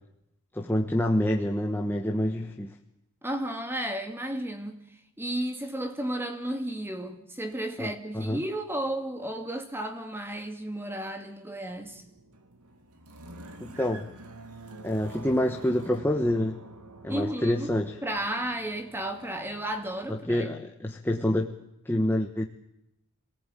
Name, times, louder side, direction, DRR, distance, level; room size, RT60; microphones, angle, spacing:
voice 1, 0.5-2.7 7.8-8.4 13.6-14.1 14.8-16.6 17.0-17.9 20.1-21.6 21.8-22.5, left 1 dB, 10° left, 1.2 m, -27 dB
voice 2, 3.2-4.8 5.2-12.0 17.1-17.7 18.0-20.5, right 1 dB, 10° right, 2.4 m, -33 dB
sound 1, 11.7-20.2, right 2 dB, 90° right, 2.5 m, -48 dB
26.5 x 18.5 x 9.2 m
head